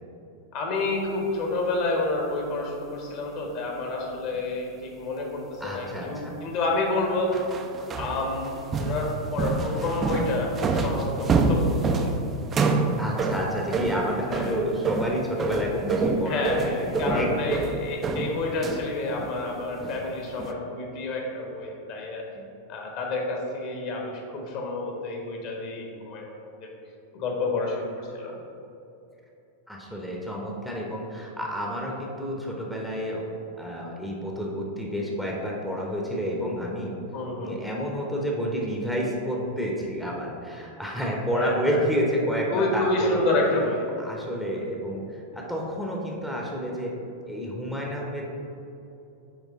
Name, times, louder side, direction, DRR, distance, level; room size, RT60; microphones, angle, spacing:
voice 1, 0.5-7.4 7.9-12.1 14.2-14.6 16.3-22.2 22.7-26.7 27.1-28.3 37.1-37.6 41.3-41.8 42.5-43.9, left 2 dB, 45° left, 0 dB, 1.1 m, -29 dB
voice 2, 5.6-6.4 13.0-17.5 22.4-22.5 29.7-33.3 33.6-36.9 37.4-43.3 44.0-47.0 47.2-48.3, equal, ahead, -2 dB, 0.8 m, -30 dB
sound 1, 7.3-18.9 19.2-19.5 19.8-20.1 20.4-20.5, right 3 dB, 25° right, 0.5 m, -27 dB
8.4 x 3.2 x 3.7 m, 2.9 s
figure-of-eight pair, 90°, 0 cm